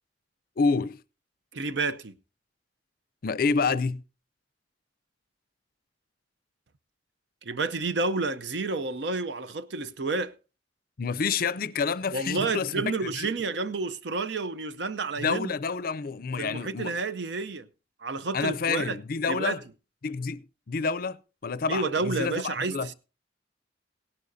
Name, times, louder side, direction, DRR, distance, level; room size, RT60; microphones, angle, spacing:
voice 1, 0.6-1.0 3.2-4.0 11.0-13.3 15.2-17.0 18.3-19.6 20.0-21.2 21.4-22.9, left 4 dB, 55° left, 0.5 m, -28 dB
voice 2, 1.5-2.1 7.4-10.3 12.1-15.5 16.4-17.7 18.0-19.0 19.3-19.6 21.7-22.9, right 3 dB, 70° right, 0.7 m, -30 dB
17.5 x 11.5 x 2.7 m
head